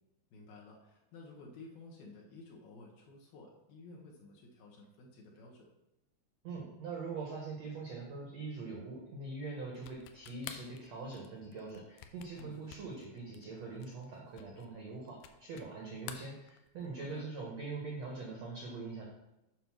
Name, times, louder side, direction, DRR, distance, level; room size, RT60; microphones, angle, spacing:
voice 1, 0.3-5.7 12.3-12.6 17.0-17.3, left 2 dB, 70° left, -2 dB, 2.6 m, -53 dB
voice 2, 6.4-19.0, right 3 dB, 75° right, -2 dB, 1.5 m, -43 dB
sound 1, 9.8-15.7 16.0-17.0, left 10 dB, 90° left, 2.2 m, -51 dB
7.9 x 4.9 x 6.0 m, 0.93 s
omnidirectional pair, 5.1 m